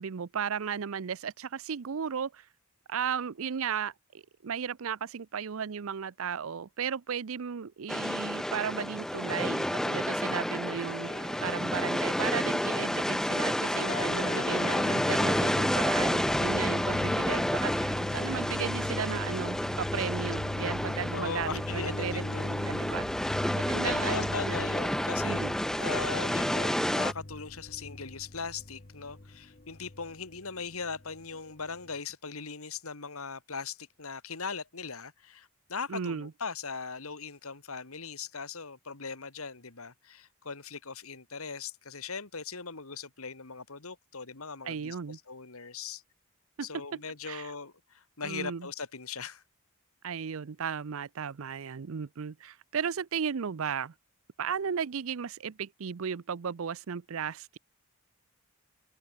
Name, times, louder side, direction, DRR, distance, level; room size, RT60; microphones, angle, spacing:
voice 1, 0.0-2.5 2.9-3.9 4.4-22.2 22.7-24.7 25.2-25.5 35.9-36.3 44.6-45.2 46.6-47.0 47.3-47.5 48.2-48.7 50.0-53.9 54.4-57.6, right 7 dB, 65° right, 0.5 m, -35 dB
sound 1, 7.9-27.1, equal, ahead, 0.5 m, -30 dB
voice 2, 10.9-11.5 16.9-17.4 21.1-22.5 23.7-25.4 25.8-46.0 46.6-49.4, left 5 dB, 75° left, 2.3 m, -39 dB
sound 2, 13.6-31.9, left 2 dB, 35° left, 1.1 m, -39 dB
open air
head